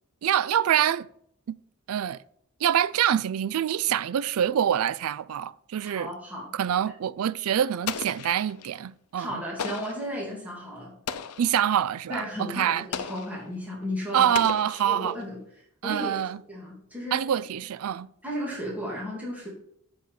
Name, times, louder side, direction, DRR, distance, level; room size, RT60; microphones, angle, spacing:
voice 1, 0.2-1.1 1.5-1.6 1.9-2.2 2.6-6.1 6.5-9.4 11.4-12.9 14.1-15.2 15.8-16.4 17.1-18.1, right 10 dB, 70° right, 0.4 m, -25 dB
voice 2, 5.9-6.5 9.2-10.9 12.1-14.3 14.8-15.4 15.8-16.2 16.5-17.2 18.2-19.5, equal, 5° right, 2.8 m, -34 dB
Explosion, 7.9-8.8 9.6-10.1 11.1-11.6 12.9-13.5 14.3-15.2, left 7 dB, 90° left, 0.7 m, -35 dB
7.7 x 7.7 x 5.1 m
head